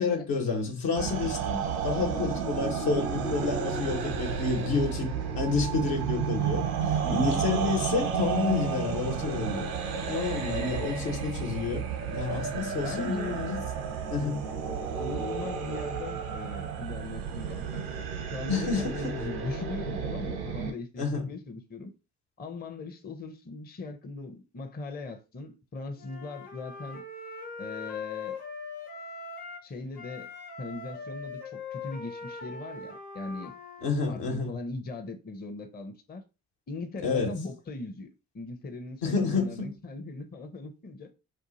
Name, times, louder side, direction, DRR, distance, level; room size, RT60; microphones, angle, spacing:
voice 1, 0.0-9.7 10.1-11.8 12.1-13.6 14.1-14.4 18.5-19.1 21.0-21.3 33.8-34.5 37.0-37.3 39.0-39.7, left 4 dB, 70° left, 1.2 m, -29 dB
sound 1, 1.0-20.7, right 7 dB, 80° right, 0.9 m, -32 dB
voice 2, 6.8-7.4 10.3-10.8 12.8-13.4 15.0-18.0 18.3-21.9 22.4-27.0 27.6-28.4 29.6-30.3 30.6-33.5 34.1-36.2 36.7-38.1 38.3-41.1, left 3 dB, 20° left, 0.6 m, -39 dB
Wind instrument woodwind instrument, 26.0-29.7 29.9-33.9, left 4 dB, 90° left, 1.0 m, -41 dB
2.6 x 2.4 x 3.9 m
hypercardioid pair, 50°, 44 cm